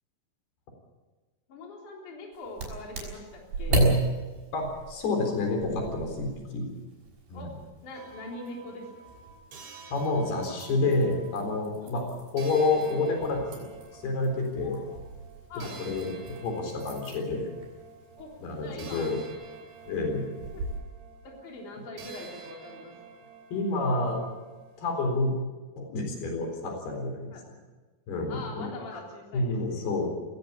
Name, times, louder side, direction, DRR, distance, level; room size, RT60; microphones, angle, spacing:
voice 1, 1.5-3.8 7.3-7.5 7.8-8.9 11.8-12.1 14.6-15.0 15.5-15.8 18.2-18.3 18.6-19.1 20.5-20.7 21.2-22.9 27.3-27.4 28.3-29.8, left 2 dB, 55° left, -1 dB, 4.9 m, -42 dB
sound 1, 2.3-20.8, right 2 dB, 85° right, 7.5 m, -38 dB
voice 2, 4.5-6.7 7.3-7.5 9.9-12.0 12.3-13.7 13.9-14.8 15.8-16.1 16.4-17.5 18.4-19.2 19.9-20.3 23.5-24.2 24.8-25.3 25.8-27.3 28.1-28.6 29.3-30.1, left 2 dB, 85° left, 3 dB, 6.0 m, -28 dB
sound 2, 7.9-11.7 12.4-25.1, right 5 dB, 45° right, 3.0 m, -50 dB
20.5 x 16.5 x 8.5 m, 1.3 s
omnidirectional pair, 4.4 m